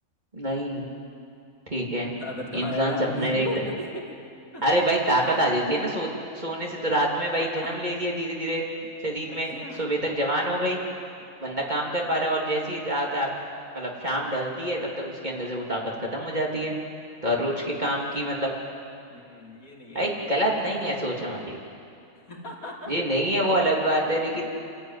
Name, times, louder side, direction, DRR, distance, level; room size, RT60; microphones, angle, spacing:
voice 1, 0.3-0.9 1.7-2.1 2.5-3.5 4.6-6.1 6.3-8.6 9.0-10.8 11.4-13.3 13.7-16.7 17.2-18.5 19.9-21.6 22.9-24.5, right 1 dB, 30° right, -3 dB, 3.3 m, -26 dB
voice 2, 2.2-4.2 4.5-4.7 5.2-5.3 7.4-7.7 9.3-9.8 11.2-11.4 17.8-18.3 19.1-20.9 22.3-23.0 23.3-23.4, left 1 dB, 75° left, -3 dB, 3.7 m, -37 dB
28.5 x 13.5 x 9.5 m, 2.6 s
omnidirectional pair, 1.5 m